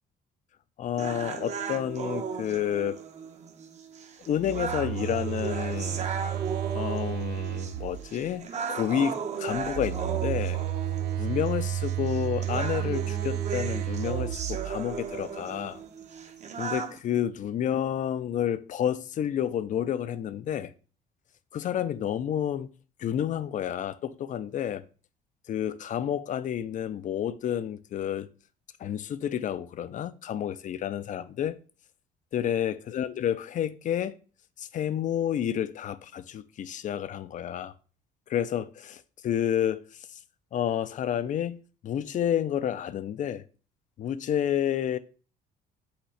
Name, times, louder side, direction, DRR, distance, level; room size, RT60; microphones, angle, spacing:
voice 1, 0.8-3.0 4.2-6.1 6.7-10.6 11.2-15.8 16.6-20.7 21.5-22.7 23.0-24.8 25.5-28.3 28.8-31.6 32.3-34.2 34.6-37.7 38.3-40.2 40.5-41.6 41.8-43.4 44.0-45.0, left 10 dB, 50° left, 0.5 m, -30 dB
sound 1, 1.0-17.0, right 6 dB, 45° right, 0.9 m, -36 dB
Telephone, 4.3-8.3 9.5-15.2, right 13 dB, 75° right, 0.4 m, -32 dB
5.8 x 3.1 x 5.7 m
cardioid pair, 110°, 17 cm